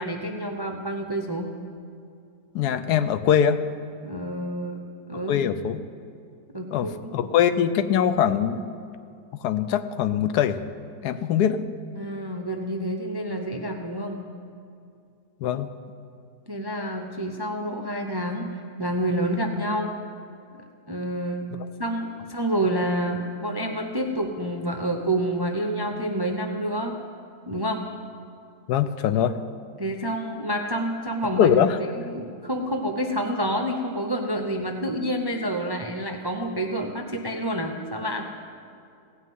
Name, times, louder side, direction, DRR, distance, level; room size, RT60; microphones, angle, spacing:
voice 1, 0.0-1.5 4.0-4.8 5.1-5.4 6.5-7.1 11.9-14.3 16.5-19.9 20.9-21.5 21.8-26.9 27.5-27.8 29.8-31.5 31.8-38.2, right 1 dB, 30° right, 3 dB, 0.4 m, -28 dB
voice 2, 2.5-3.6 5.3-5.8 6.7-8.6 9.4-10.6 11.0-11.7 15.4-15.7 28.7-29.4 31.4-31.8, left 9 dB, 80° left, 11 dB, 1.1 m, -22 dB
16.0 x 6.0 x 9.2 m, 2.4 s
omnidirectional pair, 1.7 m